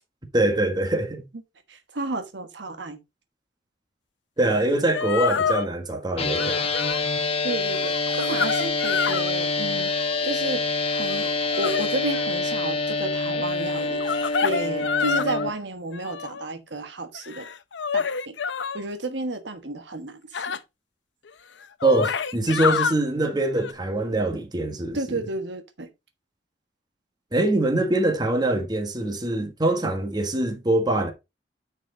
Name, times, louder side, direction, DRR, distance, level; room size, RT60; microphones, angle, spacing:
voice 1, 0.3-1.2 4.4-6.8 21.8-25.3 27.3-31.1, right 2 dB, 25° right, 1.5 m, -24 dB
voice 2, 1.7-3.0 7.4-9.9 10.2-11.3 11.6-17.5 17.9-18.3 18.7-20.6 24.9-25.9, right 2 dB, 75° right, 1.3 m, -32 dB
sound 1, 4.6-4.7 4.9-5.7 6.3-7.0 7.6-9.3 9.8-10.3 10.9-12.3 13.7-15.5 15.9-16.5 17.1-18.8 20.3-20.6 21.3-21.4 21.6-23.0 23.6-23.7, left 6 dB, 80° left, 0.7 m, -28 dB
sound 2, 6.2-15.5, left 3 dB, 35° left, 1.0 m, -26 dB
9.9 x 4.7 x 3.8 m
head